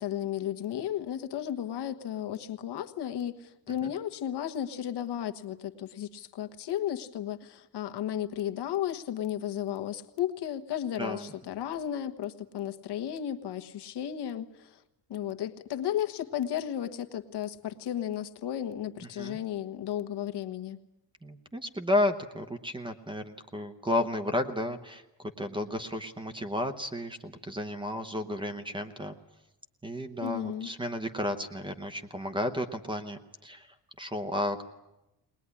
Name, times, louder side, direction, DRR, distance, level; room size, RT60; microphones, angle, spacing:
voice 1, 0.0-14.8 15.1-20.8 30.2-30.7, left 10 dB, 65° left, 7 dB, 1.4 m, -34 dB
voice 2, 11.0-11.3 19.2-19.4 21.2-25.0 25.4-29.1 29.8-33.7 34.0-34.6, left 1 dB, 10° right, 7 dB, 0.9 m, -32 dB
21.0 x 20.5 x 9.7 m, 0.93 s
cardioid pair, 175°, 43 cm